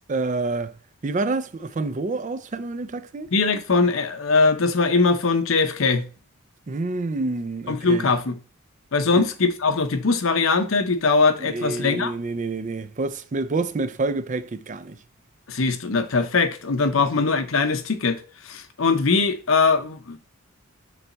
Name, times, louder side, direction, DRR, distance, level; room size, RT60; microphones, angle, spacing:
voice 1, 0.1-0.7 1.0-3.3 6.7-8.1 9.2-9.3 11.4-15.0 17.0-17.1, right 3 dB, 35° right, 0.4 m, -28 dB
voice 2, 3.3-6.1 7.7-8.4 8.9-12.1 15.5-20.2, left 4 dB, 70° left, 0.8 m, -21 dB
7.1 x 3.4 x 3.9 m
head